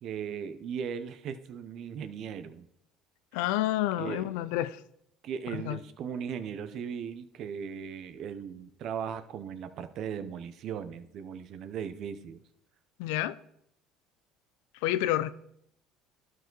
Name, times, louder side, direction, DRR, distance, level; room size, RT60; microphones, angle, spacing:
voice 1, 0.0-2.6 4.0-4.3 5.2-12.4, right 7 dB, 55° right, 0.7 m, -38 dB
voice 2, 3.3-4.8 5.5-5.8 13.0-13.4 14.8-15.3, left 14 dB, 85° left, 0.4 m, -29 dB
12.5 x 4.8 x 3.9 m
supercardioid pair, 100°, 0 cm